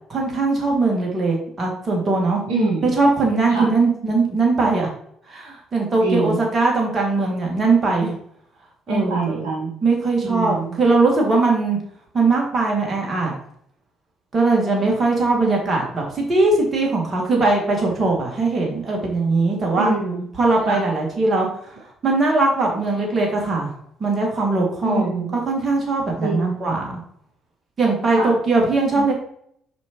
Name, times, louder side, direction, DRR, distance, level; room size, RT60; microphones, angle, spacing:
voice 1, 0.1-2.4 2.8-4.9 5.3-8.2 8.9-9.4 9.8-11.8 12.1-13.3 14.3-19.9 20.4-21.8 22.0-23.7 24.0-25.1 25.5-27.0 27.8-29.1, right 3 dB, 35° right, -1 dB, 2.5 m, -20 dB
voice 2, 2.5-2.9 3.5-3.7 6.0-6.4 8.9-9.7 10.2-10.8 19.8-20.3 20.7-20.8 24.8-25.3 26.2-26.7 28.1-28.3 29.0-29.1, right 3 dB, 70° right, -3 dB, 1.1 m, -24 dB
6.9 x 5.4 x 3.1 m, 0.68 s
figure-of-eight pair, 50°, 0 cm